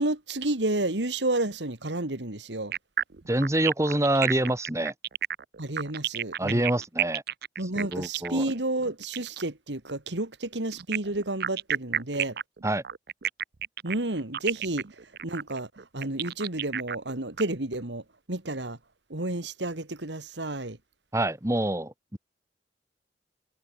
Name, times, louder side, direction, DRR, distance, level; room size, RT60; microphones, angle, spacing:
voice 1, 0.0-2.7 5.6-6.7 7.6-12.4 13.8-14.8 15.2-15.7 15.9-18.0 18.3-18.8 19.1-20.8, right 2 dB, 90° right, 2.5 m, -31 dB
sound 1, 2.7-9.5 10.7-17.4, right 9 dB, 60° right, 0.7 m, -31 dB
voice 2, 3.3-4.9 6.4-7.2 7.8-8.5 12.6-12.8 21.1-22.2, right 1 dB, 15° right, 1.6 m, -26 dB
head